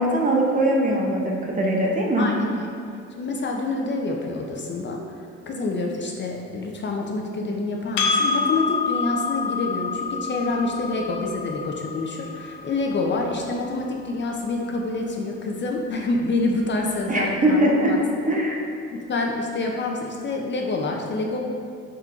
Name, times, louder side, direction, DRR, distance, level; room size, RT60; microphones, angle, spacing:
voice 1, 0.0-2.3 17.1-17.9 18.2-18.7, right 1 dB, 25° right, -1 dB, 0.6 m, -21 dB
voice 2, 2.2-2.7 3.2-5.0 5.5-18.0 18.9-21.4, left 2 dB, 40° left, 0 dB, 0.5 m, -27 dB
Percussion, 8.0-12.8, left 4 dB, 85° left, 0.6 m, -27 dB
4.2 x 3.7 x 2.4 m, 2.5 s
cardioid pair, 90°, 30 cm